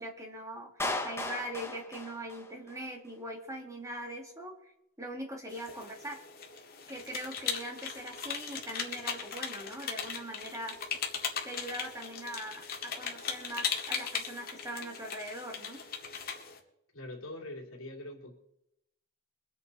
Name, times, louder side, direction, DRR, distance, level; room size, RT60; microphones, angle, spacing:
voice 1, 0.0-4.7 5.0-6.2 6.9-10.7 11.4-15.8, right 1 dB, 15° right, 2 dB, 2.3 m, -41 dB
Clapping, 0.8-2.8, left 2 dB, 10° left, 1.1 m, -36 dB
sound 1, 5.5-16.6, left 6 dB, 45° left, 2.1 m, -38 dB
voice 2, 16.9-18.3, left 1 dB, 70° left, 0 dB, 2.7 m, -43 dB
23.5 x 8.2 x 4.1 m, 0.81 s
head